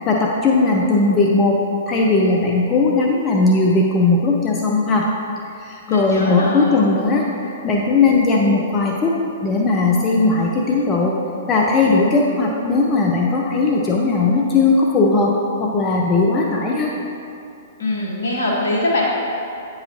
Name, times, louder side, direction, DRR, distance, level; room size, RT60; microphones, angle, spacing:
voice 1, 0.0-5.1 5.6-7.3 7.6-11.2 11.5-15.3 15.6-16.9, left 3 dB, 25° left, -2 dB, 0.5 m, -18 dB
voice 2, 5.9-6.6 17.8-19.0, left 1 dB, 65° left, -4 dB, 1.5 m, -22 dB
8.7 x 4.8 x 2.8 m, 2.6 s
figure-of-eight pair, 110°, 0 cm